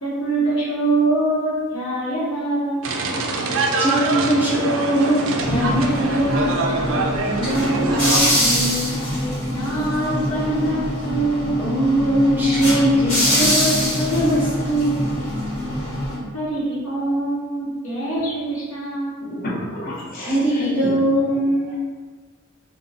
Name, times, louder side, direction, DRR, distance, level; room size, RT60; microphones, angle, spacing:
voice 1, 0.0-2.9 7.2-11.6 16.3-19.1, right 2 dB, 70° left, -7 dB, 1.1 m, -24 dB
sound 1, 2.8-8.2, right 2 dB, 65° right, 0.4 m, -24 dB
voice 2, 3.8-6.4 11.6-15.0 20.1-21.8, right 1 dB, 10° right, -8 dB, 0.6 m, -20 dB
sound 2, 5.4-16.2, equal, 25° left, 1.5 m, -24 dB
voice 3, 19.3-21.0, left 1 dB, 45° left, -6 dB, 0.7 m, -31 dB
2.5 x 2.2 x 3.9 m, 1.4 s
head